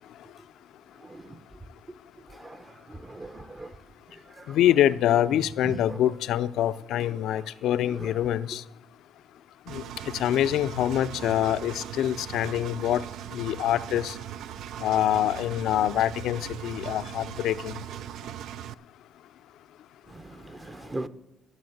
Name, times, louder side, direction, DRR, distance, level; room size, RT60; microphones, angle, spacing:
voice 1, 1.0-1.4 2.3-3.8 4.1-4.6 5.3-6.0 7.3-7.4 7.9-8.2 20.1-21.1, right 2 dB, 20° right, 0.8 m, -40 dB
voice 2, 4.5-8.6 9.7-9.8 10.2-13.0 13.3-14.2 14.8-17.7, left 11 dB, 80° left, 0.4 m, -25 dB
Engine, 9.7-18.7, right 10 dB, 75° right, 0.4 m, -39 dB
12.0 x 7.0 x 7.8 m
supercardioid pair, 75°, 0 cm